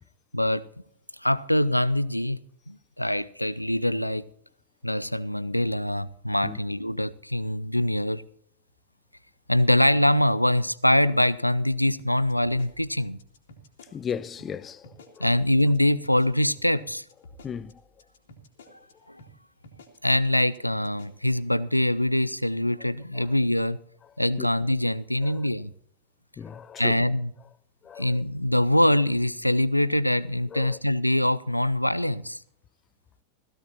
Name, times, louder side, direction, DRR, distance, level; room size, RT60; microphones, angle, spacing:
voice 1, 0.3-0.6 1.2-2.4 2.7-4.2 4.8-8.2 9.5-13.2 15.2-17.0 19.1-19.2 20.0-23.8 24.2-25.7 26.8-27.3 28.0-32.4, left 1 dB, 90° left, 0.5 m, -24 dB
sound 1, 12.0-14.1 14.4-14.5 14.8-15.3 15.6-15.8 16.0-18.9 19.2-19.3 19.6-20.1 20.4-20.6 20.8-21.4, left 1 dB, 60° left, 2.5 m, -50 dB
voice 2, 13.9-15.3 17.4-17.8 22.8-23.3 24.4-24.5 25.2-25.5 26.4-27.1 27.8-28.2 30.5-30.8, left 7 dB, 25° left, 0.5 m, -37 dB
17.0 x 15.5 x 2.9 m
figure-of-eight pair, 90°, 0 cm